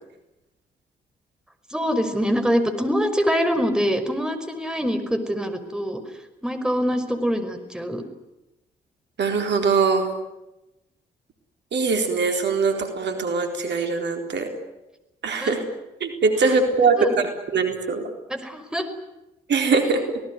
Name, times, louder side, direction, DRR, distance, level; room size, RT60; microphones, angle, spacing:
voice 1, 1.7-6.0 6.4-8.0 15.4-15.5 16.8-17.1 18.3-18.9, equal, 5° right, 7 dB, 5.5 m, -24 dB
voice 2, 9.2-10.1 11.7-14.5 15.2-15.6 16.0-18.1 19.5-20.2, right 4 dB, 60° right, 5 dB, 4.2 m, -22 dB
26.5 x 19.0 x 9.7 m, 0.95 s
hypercardioid pair, 40°, 21 cm